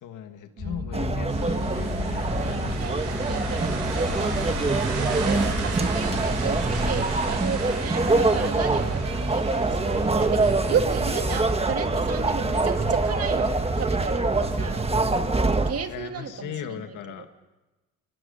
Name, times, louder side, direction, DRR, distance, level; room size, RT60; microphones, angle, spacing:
voice 1, 0.0-2.9 15.9-17.3, left 9 dB, 85° left, 7 dB, 2.0 m, -38 dB
sound 1, 0.6-15.5, left 5 dB, 55° left, 3.6 m, -35 dB
voice 2, 0.6-2.0 2.3-15.0 15.5-17.3, right 7 dB, 55° right, 7 dB, 1.8 m, -34 dB
sound 2, 0.9-15.7, right 3 dB, 20° right, 1.5 m, -25 dB
sound 3, 1.3-14.7, right 5 dB, 80° right, 5.6 m, -38 dB
27.5 x 20.5 x 5.6 m, 1.1 s
cardioid pair, 90°, 30 cm